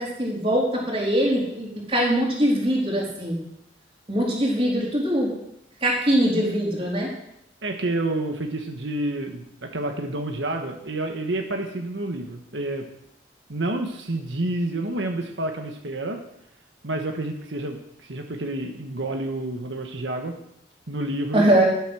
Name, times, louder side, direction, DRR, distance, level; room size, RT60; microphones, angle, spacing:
voice 1, 0.0-3.4 4.1-5.3 5.8-7.1 21.3-21.7, right 1 dB, 30° right, -3 dB, 3.8 m, -22 dB
voice 2, 7.6-12.9 13.5-16.2 16.8-20.3 20.9-21.5, right 2 dB, 90° right, 3 dB, 1.4 m, -29 dB
12.0 x 8.3 x 6.3 m, 0.77 s
head